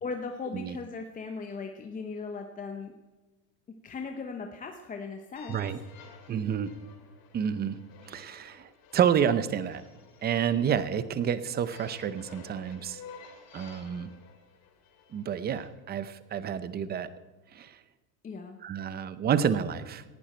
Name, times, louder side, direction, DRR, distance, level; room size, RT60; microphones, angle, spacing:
voice 1, 0.0-2.9 3.8-5.6 18.2-18.6, left 4 dB, 15° left, 4 dB, 0.9 m, -38 dB
sound 1, 5.4-15.7, left 6 dB, 45° left, 3.0 m, -53 dB
voice 2, 6.3-6.7 7.3-7.8 8.1-9.8 10.2-13.0 13.5-14.1 15.1-17.1 17.5-17.8 18.6-20.0, right 8 dB, 20° right, 14 dB, 0.7 m, -29 dB
18.0 x 11.5 x 4.4 m, 1.3 s
supercardioid pair, 150°, 47 cm